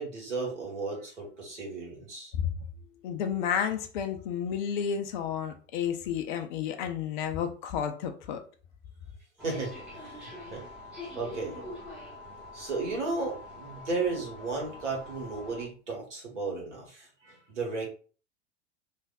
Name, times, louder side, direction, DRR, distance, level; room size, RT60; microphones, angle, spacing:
voice 1, 0.0-2.3 9.4-10.6 11.1-11.6 12.5-17.9, right 3 dB, 70° right, 1.4 m, -34 dB
voice 2, 3.0-8.4, left 8 dB, 45° left, 0.4 m, -31 dB
sound 1, 9.4-15.7, left 2 dB, 5° right, 1.0 m, -45 dB
3.3 x 2.5 x 2.4 m
figure-of-eight pair, 85°, 36 cm